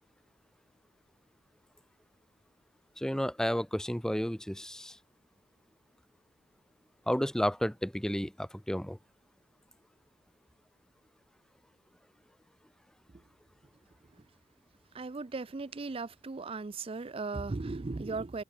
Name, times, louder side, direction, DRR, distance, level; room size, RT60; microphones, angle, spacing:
voice 1, 3.0-5.0 7.1-9.0, equal, 5° left, 0.8 m, -32 dB
voice 2, 14.9-18.4, right 3 dB, 30° right, 0.5 m, -37 dB
head